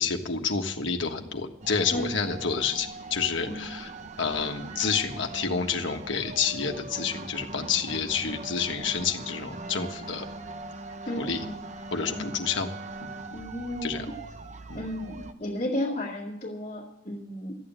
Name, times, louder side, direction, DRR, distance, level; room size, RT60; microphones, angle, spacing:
voice 1, 0.0-3.9 4.2-10.3 11.2-11.4 11.9-12.7 13.0-13.1 13.8-14.0 14.7-14.8, left 6 dB, 80° left, 4 dB, 1.5 m, -29 dB
sound 1, 1.6-15.3, right 2 dB, 40° right, 0.9 m, -41 dB
voice 2, 11.1-11.6 12.1-12.5 13.3-14.1 14.8-17.5, left 1 dB, 35° left, -6 dB, 2.1 m, -33 dB
13.5 x 9.1 x 8.8 m, 0.88 s
head